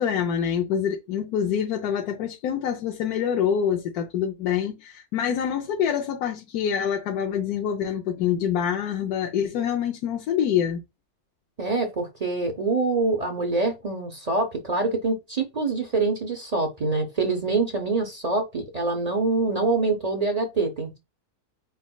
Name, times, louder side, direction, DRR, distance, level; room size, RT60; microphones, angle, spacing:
voice 1, 0.0-10.8, left 8 dB, 85° left, 1.2 m, -26 dB
voice 2, 11.6-21.0, right 3 dB, 35° right, 0.6 m, -25 dB
5.0 x 4.1 x 2.3 m
omnidirectional pair, 1.5 m